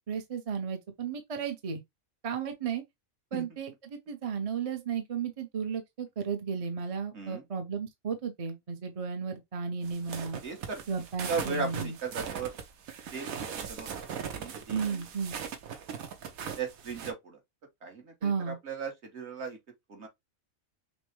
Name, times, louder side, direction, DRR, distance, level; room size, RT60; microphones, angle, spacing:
voice 1, 0.1-1.8 2.2-2.8 3.3-10.4 10.9-12.0 14.7-15.4 18.2-18.6, right 6 dB, 35° right, 0.6 m, -34 dB
sound 1, 9.8-17.1, right 7 dB, 80° right, 1.3 m, -40 dB
voice 2, 10.4-10.8 11.3-12.5 13.1-13.9 14.4-15.0 16.6-17.4 17.8-19.6 19.9-20.1, right 4 dB, 55° right, 1.5 m, -37 dB
6.1 x 2.2 x 3.2 m
omnidirectional pair, 1.5 m